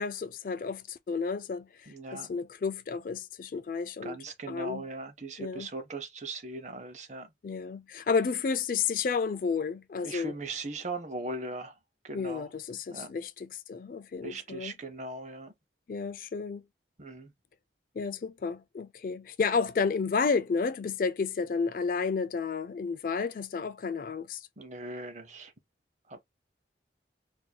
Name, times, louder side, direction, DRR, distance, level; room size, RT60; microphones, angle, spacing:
voice 1, 0.0-4.2 4.5-4.9 5.4-5.7 7.4-10.3 12.1-14.7 15.9-16.6 18.0-24.5, left 5 dB, 50° left, 0.3 m, -31 dB
voice 2, 1.9-2.3 4.0-7.3 10.0-11.7 12.0-12.5 12.9-13.1 14.2-15.5 17.0-17.3 24.6-25.5 26.1-26.2, right 2 dB, 40° right, 0.7 m, -39 dB
4.4 x 2.6 x 2.2 m
head